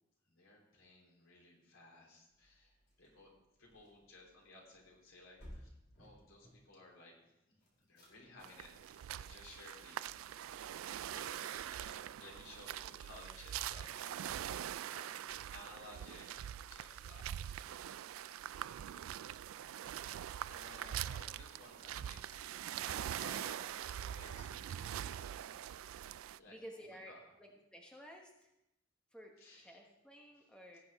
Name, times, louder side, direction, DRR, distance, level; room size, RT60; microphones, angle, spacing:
voice 1, 0.3-2.7 3.0-3.3 3.6-5.7 6.0-7.1 7.8-10.1 11.0-17.6 20.5-25.2 25.7-26.0 26.4-27.3 29.4-29.9 30.4-30.5, left 2 dB, 90° left, -1 dB, 3.3 m, -58 dB
sound 1, 2.3-6.6 7.6-13.2, equal, 50° left, 3.6 m, -62 dB
sound 2, 8.4-26.4, right 10 dB, 90° right, 0.3 m, -43 dB
voice 2, 26.5-28.3 29.1-30.8, equal, 5° left, 0 dB, 1.1 m, -54 dB
17.5 x 7.9 x 3.5 m, 0.87 s
head